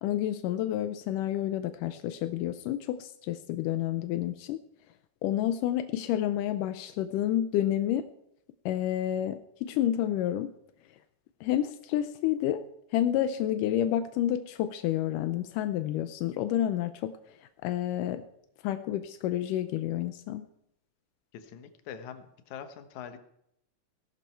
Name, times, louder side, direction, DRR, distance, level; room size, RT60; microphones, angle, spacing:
voice 1, 0.0-4.6 5.2-8.1 8.7-10.5 11.4-12.7 12.9-18.2 18.6-20.5, left 12 dB, 85° left, 10 dB, 2.3 m, -29 dB
voice 2, 21.3-23.2, left 8 dB, 70° left, 8 dB, 2.4 m, -43 dB
17.5 x 11.5 x 4.5 m, 0.76 s
omnidirectional pair, 3.7 m